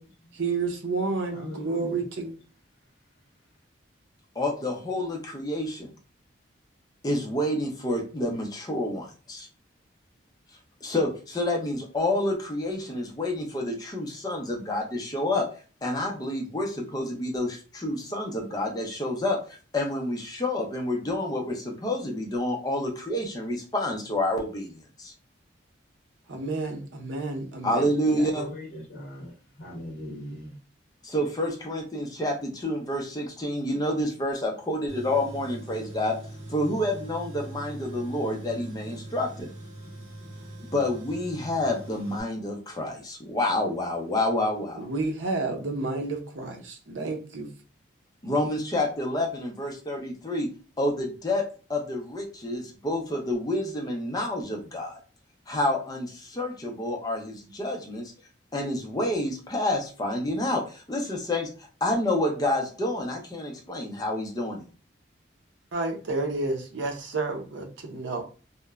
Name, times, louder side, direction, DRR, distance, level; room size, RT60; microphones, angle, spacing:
voice 1, 0.4-2.3 26.3-28.3 44.7-47.5 65.7-68.2, right 3 dB, 75° right, 0.6 m, -30 dB
voice 2, 1.3-2.1 2.8-2.9 28.3-30.6, equal, 75° left, 0.7 m, -39 dB
voice 3, 4.4-5.9 7.0-9.5 10.8-15.5 15.8-19.4 19.7-25.1 27.6-28.5 31.0-36.2 36.5-39.5 40.7-44.9 48.2-50.5 50.8-55.0 55.5-58.1 58.5-61.5 61.8-64.6, left 1 dB, 20° left, 0.5 m, -28 dB
Tools, 34.9-42.2, right 1 dB, 40° right, 1.4 m, -41 dB
2.9 x 2.1 x 2.3 m
head